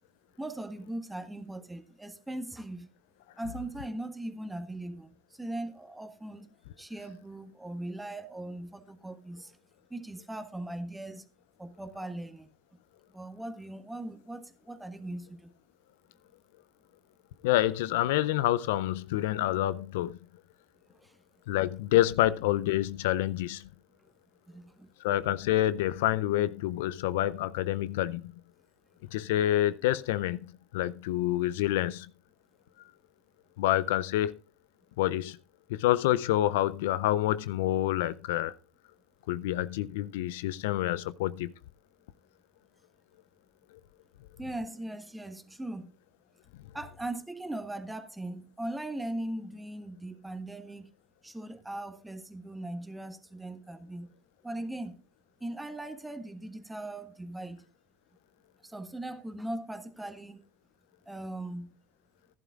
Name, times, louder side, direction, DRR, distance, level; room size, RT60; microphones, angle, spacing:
voice 1, 0.4-2.9 3.4-6.5 6.8-9.6 9.9-11.3 11.6-12.5 13.1-15.5 20.9-21.2 24.0-24.1 24.5-24.9 44.4-45.9 46.7-50.9 51.2-54.1 54.4-55.0 55.4-57.6 58.6-60.4 61.0-61.7, right 1 dB, 10° right, 1.5 m, -39 dB
voice 2, 17.4-20.2 21.5-23.6 25.0-28.3 29.1-30.4 30.7-32.1 33.6-34.3 35.0-35.4 35.7-38.5 39.3-41.5, left 14 dB, 75° left, 0.4 m, -27 dB
15.5 x 11.5 x 2.4 m
hypercardioid pair, 80°, 0 cm